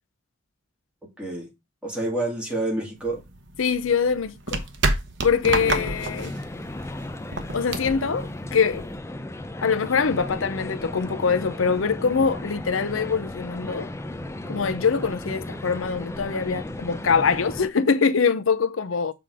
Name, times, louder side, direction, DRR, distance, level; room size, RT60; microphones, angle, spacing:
voice 1, 1.2-1.5 1.8-3.2 5.6-5.8, right 2 dB, 5° right, 2.3 m, -28 dB
sound 1, 3.0-9.0, right 3 dB, 65° right, 1.0 m, -30 dB
voice 2, 3.6-4.6 5.2-6.3 7.5-8.9 9.6-13.9 14.5-19.1, left 5 dB, 85° left, 0.6 m, -23 dB
sound 2, 5.4-17.7, left 1 dB, 15° left, 0.5 m, -35 dB
7.1 x 3.8 x 4.8 m
head